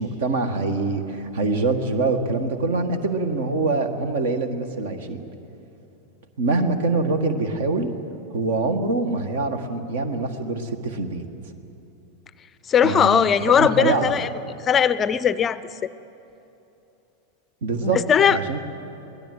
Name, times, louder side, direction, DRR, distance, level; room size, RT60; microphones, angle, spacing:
voice 1, 0.0-5.2 6.4-7.9 8.3-11.3 12.8-14.1 17.6-18.0 18.3-18.6, right 3 dB, 55° right, 9 dB, 1.8 m, -24 dB
voice 2, 12.7-14.3 14.7-15.6 17.8-18.4, left 8 dB, 25° left, 16 dB, 0.5 m, -19 dB
23.0 x 18.0 x 7.9 m, 2.9 s
figure-of-eight pair, 90°, 0 cm